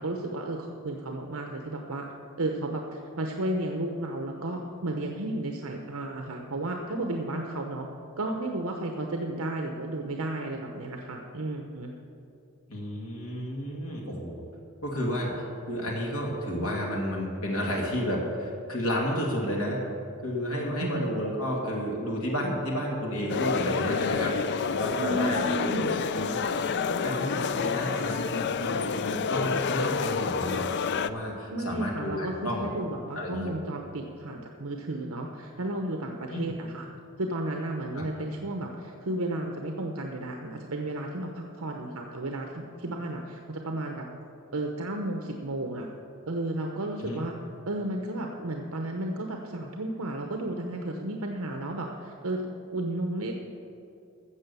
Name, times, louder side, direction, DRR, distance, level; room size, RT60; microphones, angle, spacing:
voice 1, 0.0-2.0 2.4-7.9 8.2-11.9 20.8-21.0 25.0-26.0 31.5-36.9 37.2-44.0 44.5-45.9 46.3-47.3 47.7-53.5, right 1 dB, 70° right, 2 dB, 0.9 m, -33 dB
voice 2, 12.7-14.4 14.8-19.8 20.2-24.3 24.7-25.8 26.1-26.4 26.9-30.7 31.0-32.7 33.1-33.6 36.3-36.5 37.9-38.0 47.0-47.2, equal, 80° left, -2 dB, 2.2 m, -31 dB
sound 1, 23.3-31.1, left 5 dB, 50° left, 0.4 m, -29 dB
14.0 x 7.6 x 6.9 m, 2.6 s
head